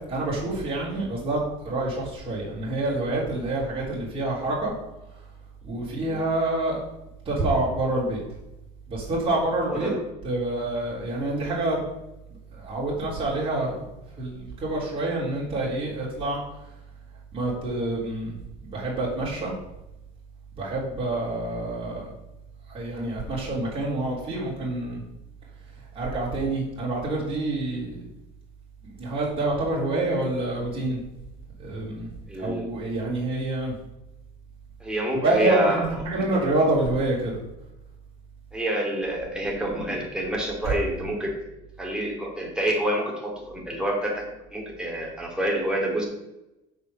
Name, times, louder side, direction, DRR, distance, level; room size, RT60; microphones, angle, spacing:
voice 1, 0.1-4.7 5.6-6.8 7.3-8.2 8.9-9.9 10.2-11.8 12.5-13.8 14.2-16.4 17.3-18.3 18.7-19.5 20.6-22.1 22.7-25.0 26.0-28.0 28.8-31.0 31.6-32.1 32.4-33.7 35.1-37.4 40.6-40.7, right 2 dB, 30° right, -6 dB, 3.6 m, -27 dB
voice 2, 9.7-10.0 32.3-32.7 34.8-36.2 38.5-41.3 41.8-44.3 44.5-46.0, right 1 dB, 5° right, -2 dB, 2.7 m, -27 dB
6.5 x 5.4 x 6.8 m, 0.92 s
cardioid pair, 115°, 20 cm